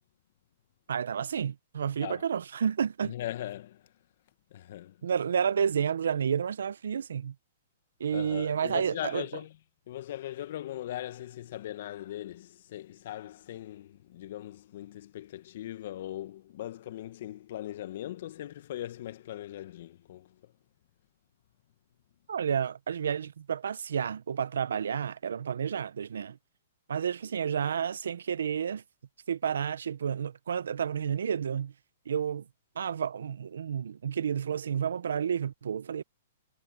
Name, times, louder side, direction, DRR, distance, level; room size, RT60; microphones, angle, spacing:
voice 1, 0.9-3.1 5.0-7.3 8.0-9.2 22.3-26.4 26.9-28.8 29.3-31.7 32.0-32.5 32.7-36.0, right 7 dB, 75° right, 1.2 m, -30 dB
voice 2, 3.0-3.8 4.5-5.0 8.1-9.5 9.9-20.5, left 13 dB, 60° left, 1.9 m, -40 dB
hypercardioid pair, 125°, 0 cm